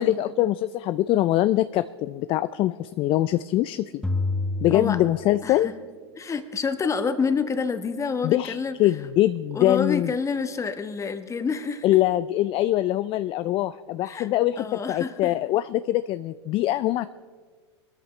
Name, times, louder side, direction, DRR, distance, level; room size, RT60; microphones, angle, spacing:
voice 1, 0.0-4.0 4.6-5.7 8.2-10.1 11.8-17.1, left 14 dB, 40° left, 13 dB, 0.4 m, -23 dB
sound 1, 4.0-5.8, left 2 dB, 5° left, 1.5 m, -29 dB
voice 2, 5.4-5.7 6.2-8.8 9.5-11.9 14.0-14.3 14.6-15.3, left 5 dB, 20° left, 9 dB, 1.3 m, -28 dB
24.0 x 13.5 x 3.3 m, 1.6 s
hypercardioid pair, 90°, 14 cm